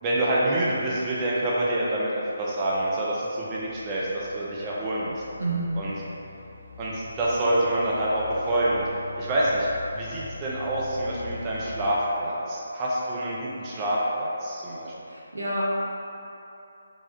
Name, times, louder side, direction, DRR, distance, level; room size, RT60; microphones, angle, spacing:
voice 1, 0.0-5.1 5.8-5.9 6.8-8.9 9.2-9.7 9.9-14.9, right 1 dB, 25° right, -6 dB, 0.5 m, -26 dB
sound 1, 2.4-11.9, left 4 dB, 55° left, 0.5 m, -44 dB
voice 2, 5.4-5.7 15.0-15.6, right 2 dB, 85° right, -5 dB, 0.8 m, -29 dB
3.2 x 2.4 x 3.6 m, 2.8 s
figure-of-eight pair, 150°, 0 cm